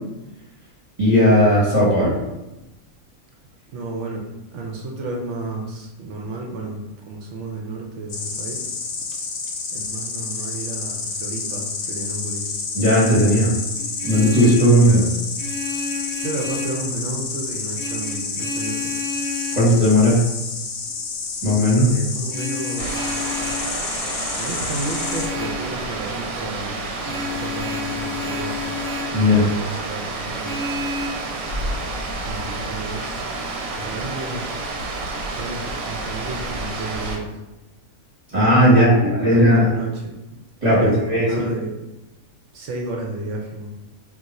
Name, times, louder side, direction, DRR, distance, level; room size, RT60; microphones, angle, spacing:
voice 1, 1.0-2.2 12.7-13.6 14.0-15.1 19.5-20.2 21.4-22.0 29.1-29.5 38.3-39.7 40.6-41.5, equal, 35° right, -10 dB, 0.9 m, -16 dB
voice 2, 3.7-4.2 4.5-6.8 7.1-8.6 9.7-12.4 14.9-15.1 16.2-18.7 21.9-23.2 24.4-26.8 27.0-28.8 29.3-30.6 32.3-33.2 33.9-34.4 35.4-35.6 35.8-37.3 38.7-40.1 40.7-41.7 42.5-43.7, right 2 dB, 65° right, 0 dB, 0.8 m, -32 dB
Insect, 8.1-25.3, left 4 dB, 70° left, 0.9 m, -29 dB
Vehicle horn car horn honking, 13.8-14.7 15.4-16.8 17.7-19.7 22.3-23.7 24.9-25.6 27.0-29.2 30.4-31.1, left 3 dB, 35° left, 0.6 m, -31 dB
sound 1, 22.8-37.2, right 2 dB, 90° right, 1.1 m, -29 dB
2.4 x 2.4 x 4.0 m, 0.95 s
omnidirectional pair, 1.5 m